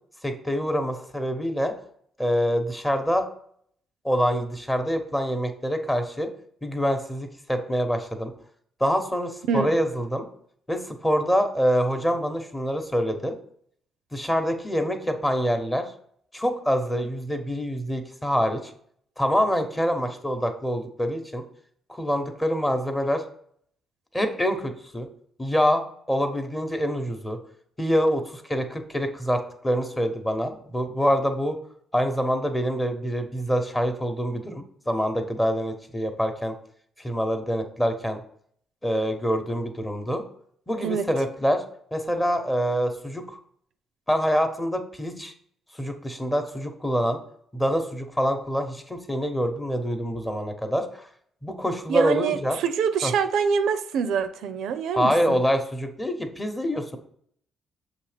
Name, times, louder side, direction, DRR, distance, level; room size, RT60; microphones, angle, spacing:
voice 1, 0.2-1.7 2.2-3.3 4.0-6.3 6.6-8.3 8.8-10.3 10.7-13.3 14.1-15.9 16.3-18.7 19.2-21.4 21.9-23.2 24.1-25.1 25.4-25.8 26.1-27.4 27.8-31.6 31.9-36.5 37.0-38.2 38.8-40.2 40.7-41.6 41.9-43.4 44.1-45.3 45.7-47.2 47.5-51.0 51.4-52.6 53.0-53.1 55.0-57.0, equal, 15° left, 6 dB, 0.9 m, -25 dB
voice 2, 51.9-55.4, right 6 dB, 80° right, 10 dB, 0.4 m, -25 dB
6.7 x 2.9 x 5.0 m, 0.63 s
cardioid pair, 90°, 0 cm